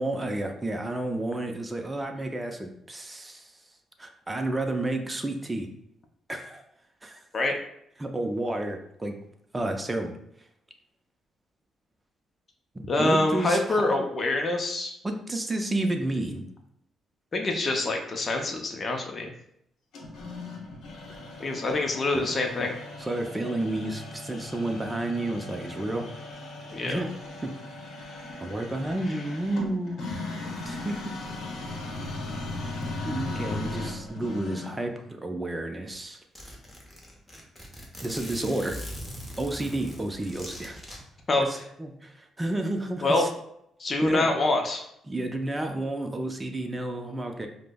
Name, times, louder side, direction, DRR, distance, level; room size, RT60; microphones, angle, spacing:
voice 1, 0.0-3.5 4.0-5.7 6.3-6.6 7.0-7.2 8.0-9.1 9.5-10.2 12.7-14.0 15.0-16.4 21.1-21.2 22.1-22.3 23.0-26.0 26.8-27.1 27.4-27.5 28.4-30.0 30.6-31.0 33.0-36.2 38.0-38.8 39.4-40.8 41.4-43.3 44.0-44.3 45.1-47.5, right 1 dB, 15° right, 4 dB, 0.5 m, -31 dB
voice 2, 12.8-14.9 17.3-19.3 21.4-22.7 26.7-27.0 41.3-41.5 43.0-43.3 43.8-44.8, left 2 dB, 35° left, 2 dB, 0.5 m, -25 dB
sound 1, 19.9-34.9, left 2 dB, 75° left, 0.8 m, -38 dB
Zipper (clothing), 35.6-35.7 35.9-36.0 36.4-41.0, equal, 10° left, 0.8 m, -41 dB
4.9 x 2.0 x 2.2 m, 0.74 s
cardioid pair, 90°, 0 cm